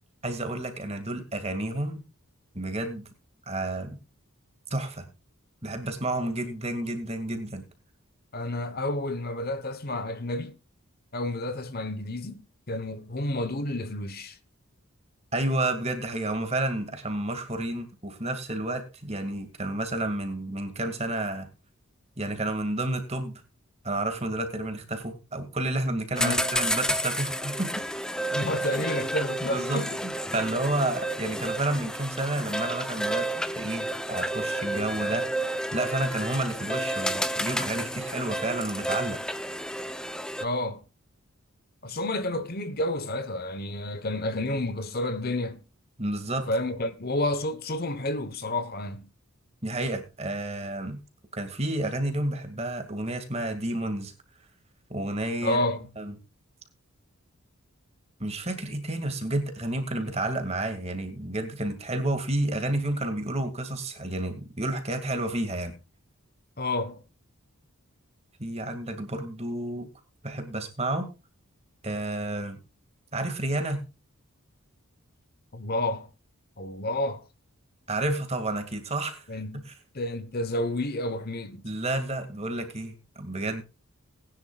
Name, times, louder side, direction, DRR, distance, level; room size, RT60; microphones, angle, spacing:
voice 1, 0.2-2.0 2.5-3.1 3.5-4.0 4.7-5.1 5.6-7.6 15.3-21.5 22.2-23.3 23.8-27.7 29.5-33.3 33.6-35.3 35.7-39.2 46.0-46.5 49.6-51.0 51.3-54.1 54.9-55.6 56.0-56.1 58.2-65.8 68.4-69.9 70.2-71.1 71.8-72.6 73.1-73.8 77.9-79.3 79.5-79.6 81.6-83.6, right 1 dB, 30° right, 2.2 m, -30 dB
voice 2, 8.3-10.5 11.1-14.4 26.2-26.5 28.3-30.0 40.4-40.8 41.8-45.6 46.5-49.1 55.4-55.9 66.6-67.0 75.5-76.1 76.6-77.2 79.3-79.6 79.9-81.6, left 1 dB, 45° left, 1.1 m, -30 dB
sound 1, 26.2-40.4, right 1 dB, 5° left, 0.6 m, -31 dB
20.0 x 10.5 x 2.4 m
head